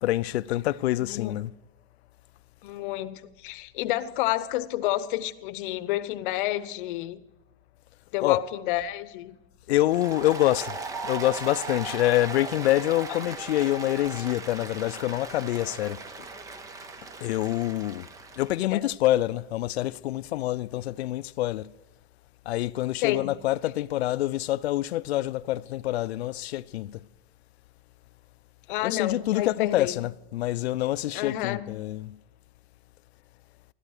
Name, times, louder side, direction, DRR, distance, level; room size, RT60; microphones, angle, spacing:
voice 1, 0.0-1.5 8.2-8.4 9.7-10.8 11.0-16.0 17.2-18.1 18.4-21.7 22.5-27.0 28.8-32.2, left 15 dB, 90° left, 0.6 m, -26 dB
voice 2, 1.0-1.5 2.6-7.2 8.1-9.4 18.7-18.8 23.0-23.3 28.7-29.9 31.1-31.8, left 14 dB, 55° left, 0.8 m, -30 dB
Applause, 9.8-18.6, right 4 dB, 10° right, 0.4 m, -38 dB
15.0 x 12.0 x 6.5 m
supercardioid pair, 150°, 31 cm